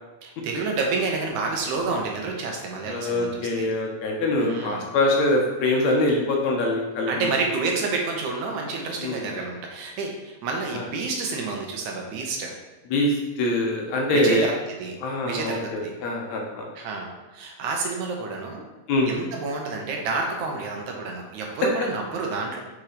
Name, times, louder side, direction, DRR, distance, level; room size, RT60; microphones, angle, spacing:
voice 1, 0.2-3.7 4.4-4.8 7.1-12.6 14.1-14.5 14.8-15.0 15.2-16.0 16.8-18.6 19.0-22.6, right 4 dB, 75° right, 1 dB, 2.3 m, -29 dB
voice 2, 2.8-7.3 9.0-9.2 10.7-10.8 12.9-14.5 15.0-16.7 18.9-19.1, left 1 dB, 70° left, -1 dB, 2.3 m, -24 dB
6.1 x 4.4 x 5.0 m, 1.1 s
omnidirectional pair, 3.5 m